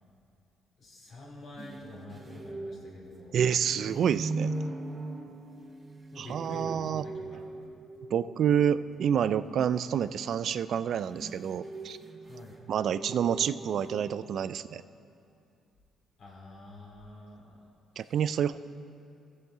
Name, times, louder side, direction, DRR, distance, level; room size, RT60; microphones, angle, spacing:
voice 1, 0.8-3.4 6.1-7.4 8.5-8.6 12.2-12.6 16.2-17.6 18.0-18.2, left 2 dB, 60° left, -4 dB, 2.4 m, -47 dB
sound 1, 1.6-8.8 10.7-14.0, right 2 dB, 30° right, 0.8 m, -40 dB
voice 2, 3.3-4.5 6.2-7.0 8.1-12.0 12.7-14.8 18.0-18.6, right 8 dB, 65° right, 15 dB, 0.3 m, -28 dB
15.0 x 8.0 x 3.8 m, 2.5 s
cardioid pair, 90°, 0 cm